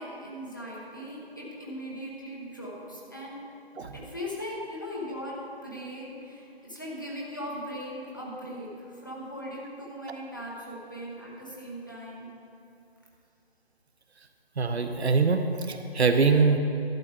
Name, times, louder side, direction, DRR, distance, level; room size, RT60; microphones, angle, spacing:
voice 1, 0.0-3.4 3.9-12.3, equal, 20° left, -5 dB, 0.8 m, -39 dB
voice 2, 14.6-16.6, right 4 dB, 85° right, 7 dB, 0.9 m, -23 dB
12.0 x 7.8 x 3.7 m, 2.6 s
hypercardioid pair, 180°, 31 cm